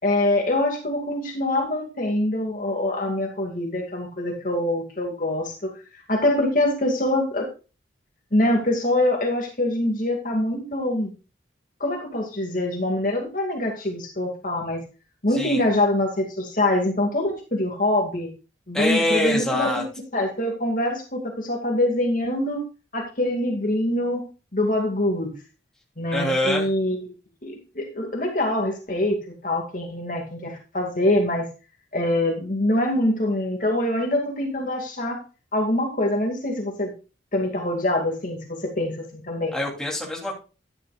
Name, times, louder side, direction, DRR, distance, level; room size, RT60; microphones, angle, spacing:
voice 1, 0.0-5.7 6.1-7.5 8.3-11.1 11.8-14.8 15.2-18.3 18.7-19.8 20.1-22.6 22.9-24.2 24.5-25.3 26.0-27.1 27.4-29.2 29.4-31.5 31.9-35.2 35.5-36.9 37.3-39.6, left 1 dB, 45° left, 2 dB, 2.2 m, -24 dB
voice 2, 18.7-19.8 26.1-26.7 39.5-40.3, left 1 dB, 5° left, -2 dB, 3.1 m, -24 dB
11.5 x 10.5 x 2.4 m, 0.32 s
head